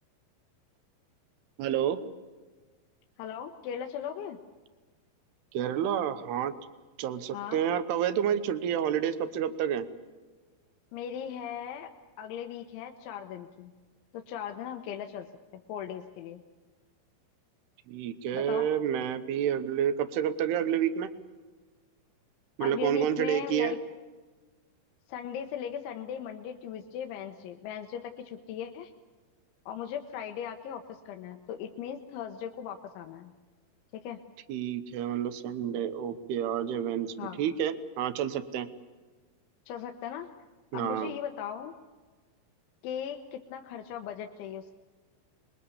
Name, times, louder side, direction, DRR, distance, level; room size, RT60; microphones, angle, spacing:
voice 1, 1.6-2.0 5.5-6.5 7.0-9.9 17.9-21.1 22.6-23.7 34.5-38.7 40.7-41.1, right 9 dB, 75° right, 13 dB, 2.8 m, -29 dB
voice 2, 3.2-4.4 7.3-7.6 10.9-11.9 12.2-13.7 14.1-15.3 15.5-16.4 18.3-18.7 22.6-23.8 25.1-28.9 29.7-33.3 33.9-34.2 37.2-37.4 39.7-40.3 40.7-41.7 42.8-44.8, left 9 dB, 80° left, 4 dB, 3.4 m, -38 dB
26.0 x 21.5 x 7.2 m, 1.4 s
omnidirectional pair, 5.4 m